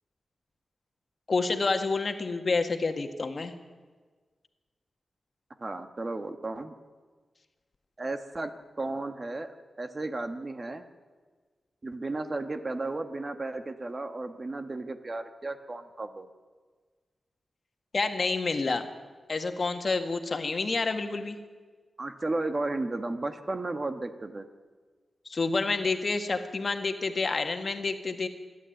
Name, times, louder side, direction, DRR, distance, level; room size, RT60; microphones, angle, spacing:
voice 1, 1.3-3.5 17.9-18.9 19.3-21.4 25.2-28.3, left 3 dB, 45° left, 6 dB, 1.7 m, -28 dB
voice 2, 5.6-6.7 8.0-8.5 8.8-10.9 11.8-16.3 22.0-24.5, right 2 dB, 35° right, 7 dB, 1.4 m, -34 dB
27.0 x 11.5 x 9.2 m, 1.5 s
wide cardioid pair, 110°, 0 cm